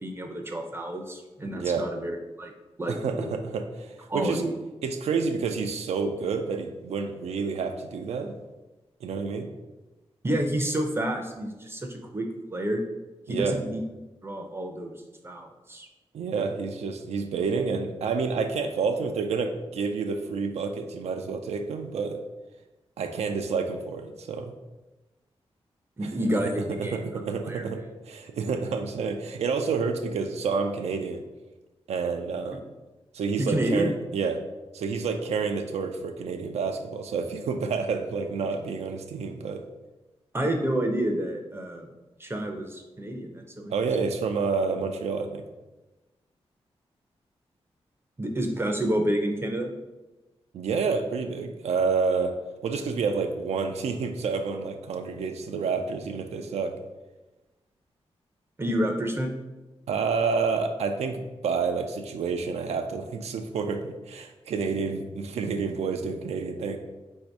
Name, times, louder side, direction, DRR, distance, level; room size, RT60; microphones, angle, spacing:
voice 1, 0.0-2.1 2.4-2.5 2.8-3.3 4.1-4.5 10.2-12.8 13.3-13.8 14.2-14.9 15.2-15.9 26.0-27.0 27.4-27.6 33.4-33.9 40.3-41.9 42.2-43.7 48.2-49.7 58.6-59.3, right 1 dB, 20° right, 3 dB, 0.5 m, -29 dB
voice 2, 1.5-1.9 2.9-4.4 4.8-8.3 9.0-9.5 13.3-13.6 16.1-22.2 23.0-24.5 26.0-31.2 31.9-32.6 33.1-34.4 34.7-39.6 43.7-45.4 50.5-52.3 52.6-56.7 59.9-66.8, right 5 dB, 85° right, 5 dB, 0.4 m, -29 dB
4.0 x 2.7 x 4.5 m, 1.1 s
wide cardioid pair, 90°, 11 cm